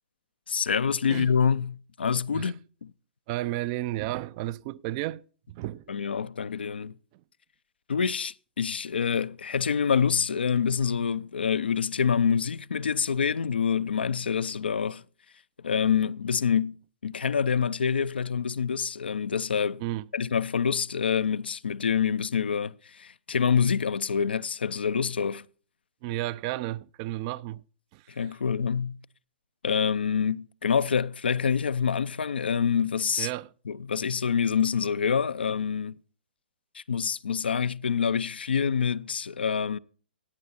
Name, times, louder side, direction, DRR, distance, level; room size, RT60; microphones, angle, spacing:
voice 1, 0.5-2.5 2.8-2.9 5.9-6.9 7.9-15.0 15.6-16.8 17.0-19.8 20.1-25.4 28.1-29.0 29.6-33.3 33.7-35.9 36.7-39.8, left 6 dB, 75° left, 0.6 m, -26 dB
voice 2, 3.3-5.2 5.5-6.0 19.8-20.0 26.0-27.6 27.9-28.0 33.2-33.5, right 16 dB, 35° right, 0.5 m, -32 dB
17.0 x 9.5 x 4.3 m
figure-of-eight pair, 125°, 6 cm